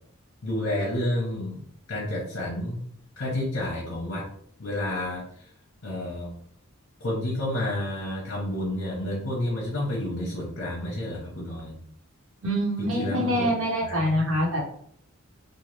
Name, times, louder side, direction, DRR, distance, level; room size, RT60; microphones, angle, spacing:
voice 1, 0.4-1.6 1.9-2.8 3.2-4.3 4.6-5.2 5.8-6.3 7.0-11.8 12.8-13.5 13.8-14.4, left 1 dB, 60° left, -4 dB, 0.7 m, -30 dB
voice 2, 12.4-14.6, equal, 75° right, -2 dB, 0.9 m, -25 dB
2.8 x 2.1 x 3.2 m, 0.63 s
head